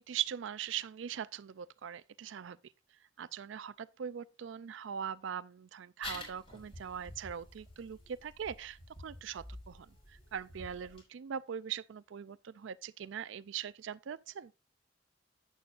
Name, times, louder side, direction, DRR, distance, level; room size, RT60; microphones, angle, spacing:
voice 1, 0.0-2.6 3.2-14.5, right 8 dB, 70° right, 0.4 m, -41 dB
sound 1, 6.0-11.0, left 1 dB, 30° left, 4.8 m, -49 dB
11.5 x 8.5 x 2.5 m
head